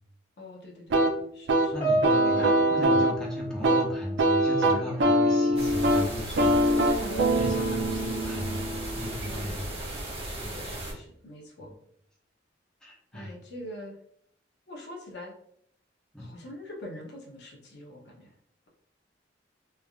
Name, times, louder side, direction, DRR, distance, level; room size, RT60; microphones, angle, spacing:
voice 1, 0.4-1.8 2.1-2.3 7.0-7.9 9.2-9.8 10.3-11.7 13.1-14.0 14.7-15.3 16.2-18.3, left 1 dB, 65° left, 0 dB, 0.6 m, -43 dB
sound 1, 0.9-9.5, right 1 dB, 65° right, 0.4 m, -24 dB
voice 2, 1.7-7.0 7.3-8.7 9.0-9.7 10.4-10.6 11.6-11.8 12.8-13.4 16.1-16.3, left 1 dB, 5° left, -4 dB, 0.6 m, -36 dB
Piano, 1.8-4.5 4.7-5.0 5.8-5.9, right 1 dB, 25° left, 0.9 m, -32 dB
sound 2, 5.6-10.9, right 1 dB, 35° right, 0.8 m, -36 dB
3.2 x 2.4 x 2.3 m, 0.68 s
head